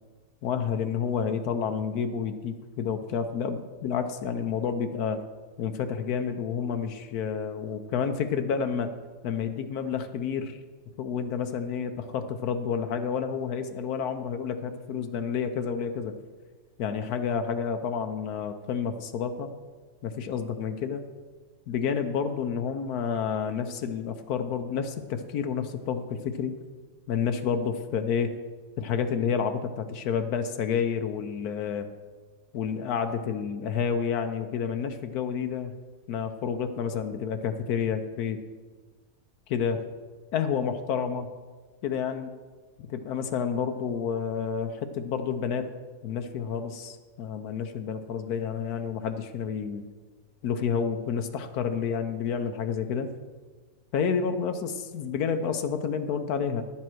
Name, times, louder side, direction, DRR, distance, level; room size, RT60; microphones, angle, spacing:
voice 1, 0.4-5.2 5.6-8.9 9.2-10.6 11.0-16.1 16.8-19.5 20.0-21.0 21.7-26.5 27.1-28.3 28.8-31.9 32.5-35.7 36.1-38.4 39.5-39.9 40.3-41.3 41.8-42.3 42.8-45.7 46.0-49.8 50.4-53.1 53.9-56.6, left 7 dB, 85° left, 8 dB, 1.2 m, -29 dB
10.5 x 7.5 x 6.1 m, 1.4 s
omnidirectional pair, 1.6 m